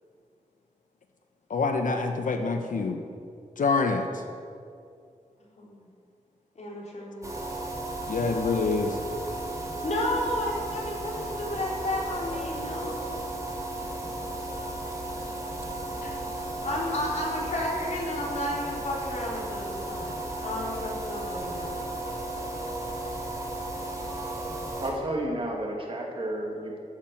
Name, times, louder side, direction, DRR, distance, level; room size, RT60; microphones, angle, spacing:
voice 1, 1.5-3.0 3.6-4.0 8.1-8.9 16.0-16.2, left 4 dB, 85° left, 5 dB, 1.0 m, -26 dB
voice 2, 6.6-7.3 9.8-13.6 15.9-16.3 16.6-20.1 20.4-21.8 23.8-24.0, left 1 dB, 60° left, -4 dB, 3.8 m, -32 dB
sound 1, 7.2-24.9, right 1 dB, 25° right, 2.9 m, -35 dB
voice 3, 24.8-26.8, right 1 dB, 40° right, 0 dB, 2.4 m, -31 dB
13.5 x 8.7 x 7.7 m, 2.4 s
wide cardioid pair, 135°, 13 cm